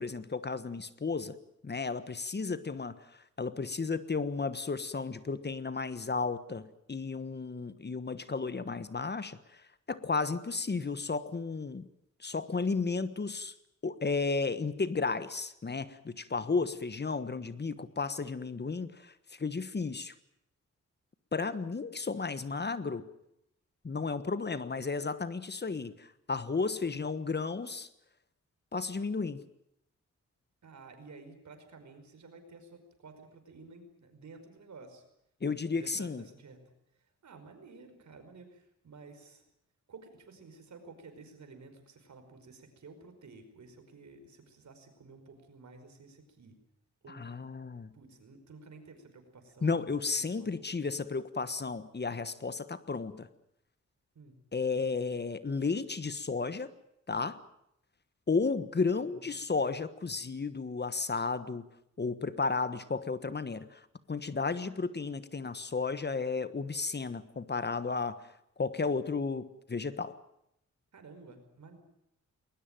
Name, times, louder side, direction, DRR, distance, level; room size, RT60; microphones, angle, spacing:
voice 1, 0.0-1.4 1.6-9.6 9.9-11.9 12.2-13.5 13.8-20.1 21.3-23.1 23.8-27.9 28.7-29.4 35.4-36.2 47.1-47.9 49.6-53.3 54.5-56.7 57.1-57.4 58.3-61.7 62.0-68.2 68.6-70.2, left 4 dB, 35° left, 13 dB, 1.3 m, -33 dB
voice 2, 16.4-16.7 30.6-35.0 35.7-36.6 37.0-39.4 39.9-46.6 47.0-47.3 47.9-49.7 50.3-50.6 54.2-54.4 59.0-59.4 70.9-71.8, right 4 dB, 70° right, 7 dB, 5.2 m, -52 dB
21.0 x 19.5 x 9.1 m, 0.79 s
cardioid pair, 75°, 29 cm